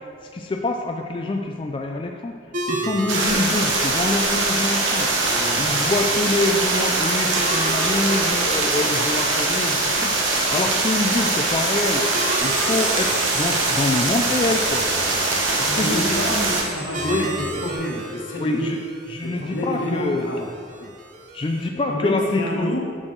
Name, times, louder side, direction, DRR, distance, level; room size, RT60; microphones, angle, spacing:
voice 1, 0.3-2.4 2.7-5.1 5.6-10.1 10.5-12.0 12.4-14.9 15.6-16.2 17.1-17.3 18.4-18.8 19.1-20.3 20.8-20.9 21.3-22.7, left 2 dB, 25° left, 2 dB, 0.3 m, -25 dB
sound 1, 2.5-21.7, right 2 dB, 40° right, 0.7 m, -35 dB
sound 2, 3.1-16.6, right 2 dB, 85° right, 1.1 m, -22 dB
voice 2, 5.3-5.8 15.0-15.3 15.6-18.7 19.2-20.5 21.9-23.0, left 1 dB, 75° left, 0 dB, 1.1 m, -29 dB
sound 3, 12.4-17.7, right 3 dB, 65° right, 1.6 m, -36 dB
7.6 x 6.2 x 3.8 m, 2.2 s
head